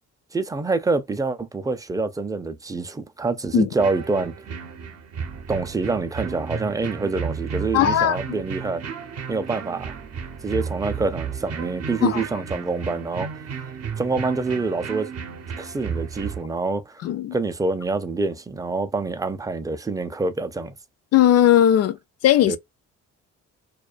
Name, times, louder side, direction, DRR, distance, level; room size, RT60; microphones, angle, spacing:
voice 1, 0.3-4.4 5.5-8.8 9.3-9.9 10.4-13.3 14.0-15.1 15.6-17.0 17.3-20.7 22.5-22.6, right 3 dB, 10° right, 0.4 m, -26 dB
sound 1, 3.8-16.4, right 6 dB, 55° right, 0.6 m, -33 dB
voice 2, 7.7-8.4 12.0-12.2 17.0-17.3 21.1-22.0 22.2-22.6, left 11 dB, 55° left, 0.4 m, -18 dB
2.3 x 2.3 x 2.3 m
cardioid pair, 90°, 30 cm